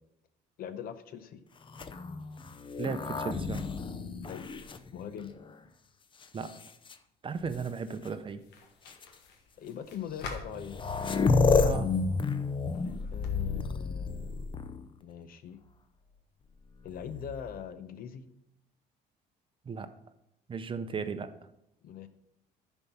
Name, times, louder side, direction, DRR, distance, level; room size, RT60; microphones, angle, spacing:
voice 1, 0.6-1.4 4.3-4.5 4.9-5.3 9.6-10.8 13.1-15.6 16.8-18.2 21.8-22.1, left 8 dB, 60° left, 11 dB, 0.7 m, -42 dB
sound 1, 1.7-5.5 6.2-6.9 8.0-8.1 8.9-9.0 10.2-10.3 10.5-14.9 16.9-17.6, left 4 dB, 30° left, 0.6 m, -30 dB
voice 2, 2.8-3.6 6.3-6.5 7.2-8.4 11.6-11.9 19.7-19.9 20.5-21.3, right 5 dB, 30° right, 10 dB, 0.6 m, -35 dB
sound 2, 7.3-13.4, left 4 dB, 85° left, 1.3 m, -49 dB
10.5 x 4.5 x 5.5 m, 0.84 s
cardioid pair, 110°, 17 cm